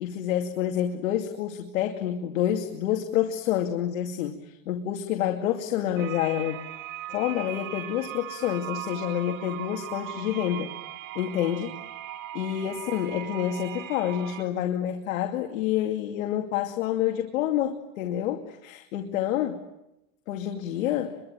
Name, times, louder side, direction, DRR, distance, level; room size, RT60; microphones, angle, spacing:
voice 1, 0.0-6.6 7.1-10.7 11.1-11.7 12.3-19.6 20.3-21.2, left 11 dB, 90° left, 4 dB, 2.6 m, -28 dB
sound 1, 6.0-14.4, right 14 dB, 80° right, 2.8 m, -39 dB
27.0 x 24.0 x 9.0 m, 0.87 s
supercardioid pair, 150°, 39 cm